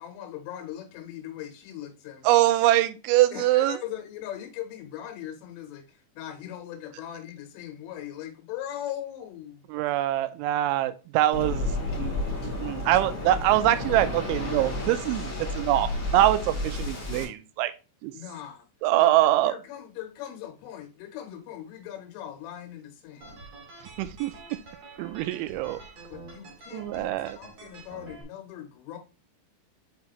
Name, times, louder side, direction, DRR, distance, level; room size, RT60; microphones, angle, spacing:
voice 1, 0.0-2.4 3.3-9.7 18.1-18.7 18.9-23.4 26.1-27.1 27.4-29.0, left 11 dB, 90° left, 3.8 m, -40 dB
voice 2, 2.3-3.8 9.7-11.7 12.0-12.2 12.6-17.7 18.0-18.1 18.8-19.5 24.0-24.3 25.0-25.8 26.7-27.4, right 14 dB, 85° right, 2.9 m, -23 dB
Waves surf, 11.3-17.2, left 2 dB, 25° left, 2.7 m, -31 dB
sound 1, 23.2-28.2, right 3 dB, 50° right, 2.1 m, -47 dB
7.5 x 5.2 x 3.0 m
omnidirectional pair, 5.6 m